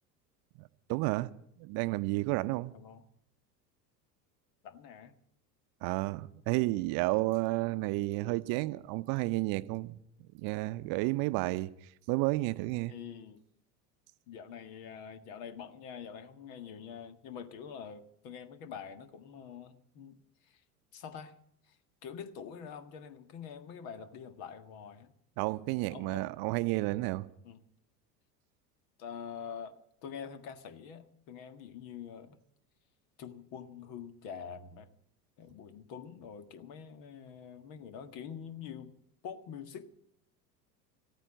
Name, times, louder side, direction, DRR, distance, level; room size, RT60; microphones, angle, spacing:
voice 1, 0.9-1.3 1.6-2.7 5.8-10.0 10.4-11.7 12.1-12.9 25.4-27.3, right 21 dB, 45° right, 0.8 m, -31 dB
voice 2, 2.7-3.0 4.6-5.1 12.9-13.4 14.3-20.2 20.5-20.6 20.9-21.4 21.7-21.8 22.0-25.1 25.9-26.3 26.8-27.0 27.4-27.6 29.0-32.4 33.2-34.9 35.4-38.9 39.2-39.9, left 7 dB, 55° left, 1.8 m, -45 dB
15.5 x 9.2 x 9.0 m
figure-of-eight pair, 75°, 49 cm